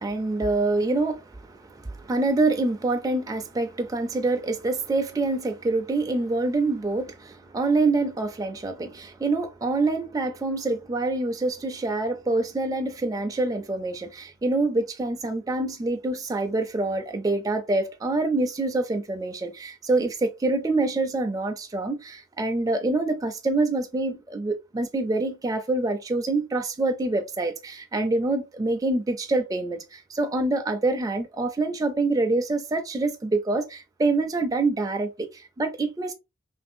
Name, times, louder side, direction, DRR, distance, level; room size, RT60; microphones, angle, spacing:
voice 1, 0.0-36.1, right 2 dB, 20° right, 0.3 m, -26 dB
2.9 x 2.6 x 2.5 m
head